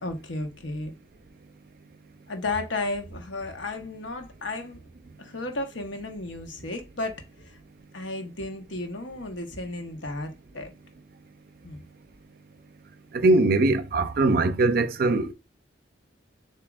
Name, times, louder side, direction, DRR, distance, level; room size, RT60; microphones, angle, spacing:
voice 1, 0.0-0.9 2.3-4.9 5.2-7.6 7.9-10.7 11.6-11.8, left 2 dB, 90° left, 1.1 m, -33 dB
voice 2, 13.1-15.3, right 2 dB, 55° right, 0.5 m, -21 dB
7.0 x 2.7 x 2.4 m
head